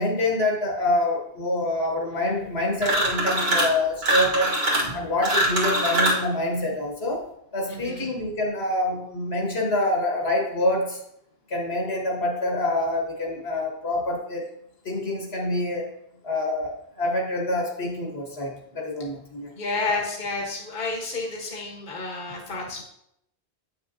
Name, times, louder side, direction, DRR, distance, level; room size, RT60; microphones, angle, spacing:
voice 1, 0.0-4.5 4.9-7.2 7.5-11.0 11.5-14.4 14.8-15.8 16.2-19.5, left 1 dB, 65° left, -1 dB, 1.5 m, -26 dB
sound 1, 2.8-3.7 4.0-6.3, right 1 dB, 60° right, 1.6 m, -23 dB
voice 2, 7.7-8.2 19.6-22.8, left 3 dB, 50° left, -1 dB, 1.4 m, -30 dB
8.3 x 5.9 x 2.7 m, 0.76 s
omnidirectional pair, 1.1 m